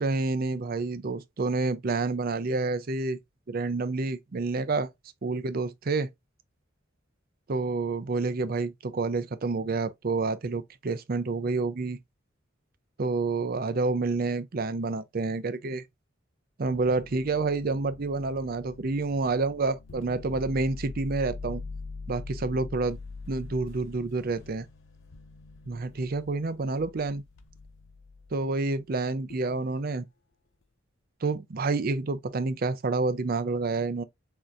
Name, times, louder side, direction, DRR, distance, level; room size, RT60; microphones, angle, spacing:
voice 1, 0.0-3.2 3.5-4.9 5.2-6.1 7.5-12.0 13.0-15.8 16.6-21.6 22.1-23.0 23.3-24.7 25.7-27.2 28.3-30.0 31.2-34.0, right 3 dB, 50° right, 0.5 m, -28 dB
sound 1, 16.6-28.4 29.3-29.6, left 4 dB, 70° left, 0.6 m, -43 dB
6.3 x 2.9 x 2.4 m
head